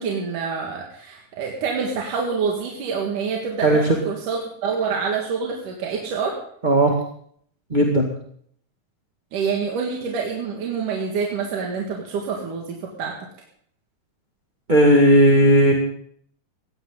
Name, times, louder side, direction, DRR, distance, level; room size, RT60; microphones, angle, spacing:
voice 1, 0.0-6.4 9.3-13.2, right 5 dB, 70° right, -1 dB, 3.5 m, -27 dB
voice 2, 6.6-6.9 7.7-8.1 14.7-15.7, right 1 dB, 20° right, -1 dB, 1.3 m, -15 dB
19.0 x 15.5 x 3.9 m, 0.62 s
omnidirectional pair, 3.8 m